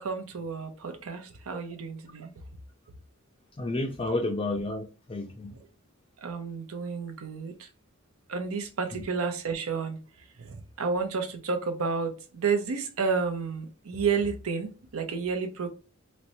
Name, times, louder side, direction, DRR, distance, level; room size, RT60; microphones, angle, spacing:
voice 1, 0.0-2.3 6.2-7.7 8.3-10.0 10.4-15.7, right 5 dB, 80° right, 0.6 m, -31 dB
voice 2, 3.6-5.5 8.9-9.0, left 2 dB, 25° left, 0.4 m, -31 dB
4.2 x 2.1 x 2.6 m
head